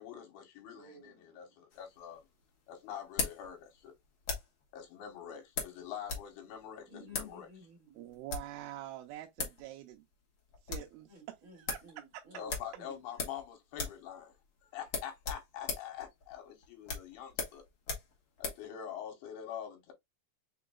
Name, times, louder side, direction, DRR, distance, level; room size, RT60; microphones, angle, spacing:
voice 1, 0.0-2.2 2.7-3.9 4.7-7.5 12.3-14.4 14.7-17.6 18.4-19.9, left 9 dB, 80° left, 3.1 m, -45 dB
voice 2, 0.7-1.3 6.9-8.0 11.1-13.0, left 1 dB, 40° right, 2.4 m, -54 dB
sound 1, 1.7-4.6 5.5-6.3 6.5-6.6 7.1-7.3 8.1-8.6 9.1-9.2 9.4-9.6 9.9-10.0 10.3-10.9 11.3-11.4 11.7-11.9 12.5-13.5 13.7-14.1 14.3-14.4 14.8-18.7, left 5 dB, 55° left, 1.4 m, -39 dB
voice 3, 8.0-10.0 10.6-11.1 11.6-11.8 12.1-12.2, right 14 dB, 80° right, 2.5 m, -45 dB
5.9 x 3.8 x 2.3 m
omnidirectional pair, 4.6 m